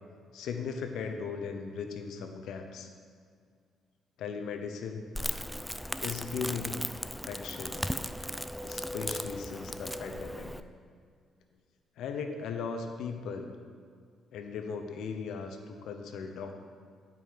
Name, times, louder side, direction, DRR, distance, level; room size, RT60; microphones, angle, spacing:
voice 1, 0.3-2.9 4.2-5.0 6.0-6.8 7.2-7.9 8.6-10.5 12.0-13.5 14.3-16.6, left 5 dB, 80° left, 5 dB, 0.8 m, -37 dB
Crackle, 5.1-10.6, equal, ahead, 0.3 m, -37 dB
11.0 x 5.3 x 4.7 m, 2.1 s
cardioid pair, 90°, 0 cm